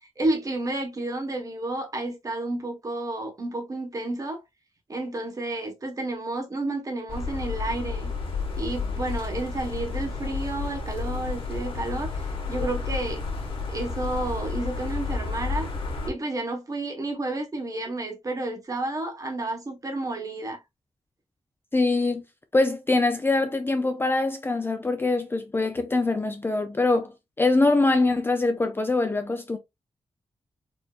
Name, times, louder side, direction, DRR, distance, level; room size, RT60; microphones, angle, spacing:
voice 1, 0.2-4.4 4.9-8.1 8.5-13.2 13.7-15.7 16.1-20.6, right 2 dB, 30° right, 1.1 m, -31 dB
sound 1, 7.1-16.1, left 4 dB, 50° left, 1.2 m, -31 dB
voice 2, 21.7-22.2 22.5-27.1 27.4-29.6, left 2 dB, 20° left, 0.4 m, -23 dB
4.4 x 2.7 x 2.3 m
wide cardioid pair, 155°, 11 cm